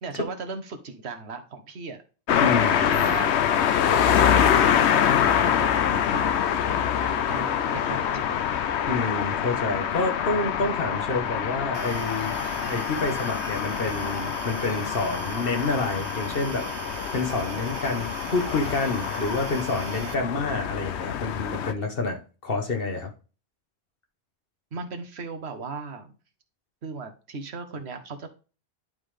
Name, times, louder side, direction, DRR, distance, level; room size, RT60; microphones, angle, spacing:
voice 1, 0.0-2.0 2.6-3.3 3.9-6.3 7.1-8.4 24.7-26.2 26.8-28.3, right 4 dB, 75° right, 1.3 m, -37 dB
sound 1, 2.3-21.7, left 8 dB, 80° left, 0.9 m, -25 dB
voice 2, 2.4-2.8 6.7-6.8 8.9-12.4 12.6-16.7 17.1-23.1, left 3 dB, 60° left, 1.5 m, -28 dB
sound 2, 11.7-20.1, right 8 dB, 90° right, 1.0 m, -40 dB
11.0 x 3.7 x 3.3 m
omnidirectional pair, 1.1 m